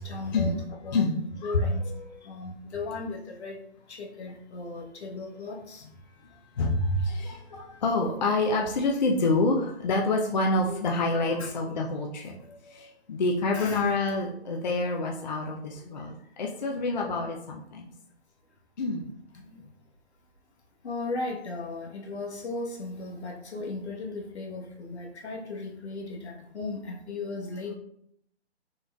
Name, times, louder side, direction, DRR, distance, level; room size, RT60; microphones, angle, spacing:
voice 1, 0.1-0.5 0.8-1.8 2.3-3.5 3.9-5.8 11.4-11.5 13.5-14.0 19.0-19.1 20.8-27.7, left 3 dB, 80° left, -1 dB, 1.2 m, -36 dB
voice 2, 0.9-2.1 6.2-17.9 18.8-19.0, left 2 dB, 45° left, 0 dB, 0.4 m, -27 dB
3.9 x 3.8 x 2.3 m, 0.73 s
hypercardioid pair, 165°, 33 cm